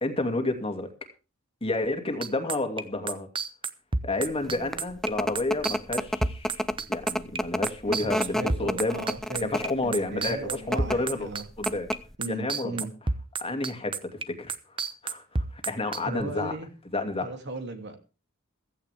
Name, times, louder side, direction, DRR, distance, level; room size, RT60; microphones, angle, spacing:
voice 1, 0.0-0.9 1.6-3.3 4.0-9.0 9.4-11.3 11.6-11.9 12.3-12.8 13.4-14.6 15.0-16.5 16.9-17.2, left 2 dB, 25° left, 5 dB, 2.5 m, -30 dB
sound 1, 2.2-12.0 12.2-16.2, right 3 dB, 25° right, 0.9 m, -29 dB
sound 2, 4.4-9.9 10.6-11.0 11.3-11.4 11.7-12.1, equal, ahead, 0.6 m, -29 dB
voice 2, 7.9-9.5 9.8-11.4 12.2-12.9 16.0-16.7 17.2-18.0, right 2 dB, 55° right, 6 dB, 2.8 m, -36 dB
15.5 x 14.5 x 3.5 m, 0.32 s
head